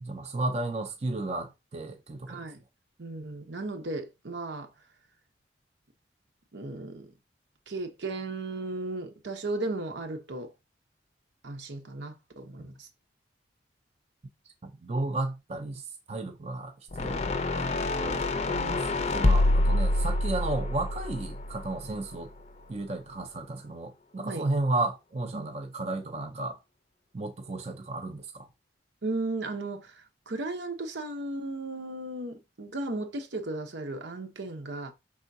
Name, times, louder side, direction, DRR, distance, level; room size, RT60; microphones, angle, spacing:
voice 1, 0.0-2.4 12.6-12.7 14.6-15.8 16.1-17.2 17.6-22.3 22.7-26.6 27.1-28.5, right 2 dB, 35° right, 0.5 m, -33 dB
voice 2, 2.3-2.6 3.0-4.7 6.5-7.1 7.7-10.5 11.4-12.9 18.5-19.2 24.2-24.5 25.3-25.4 29.0-34.9, right 2 dB, 75° right, 0.9 m, -35 dB
sound 1, 16.9-22.2, left 2 dB, 35° left, 0.5 m, -27 dB
5.5 x 3.6 x 2.7 m
head